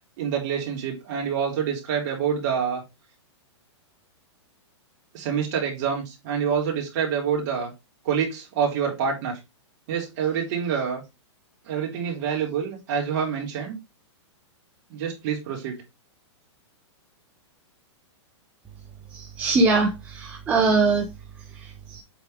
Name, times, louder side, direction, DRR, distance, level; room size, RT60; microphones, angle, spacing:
voice 1, 0.2-2.8 5.1-7.7 8.0-9.4 9.9-11.0 11.6-13.8 14.9-15.8, right 7 dB, 35° right, 3.0 m, -27 dB
voice 2, 19.1-21.1 21.6-22.0, right 3 dB, 10° right, 0.6 m, -22 dB
7.6 x 3.7 x 4.9 m
hypercardioid pair, 175°, 15 cm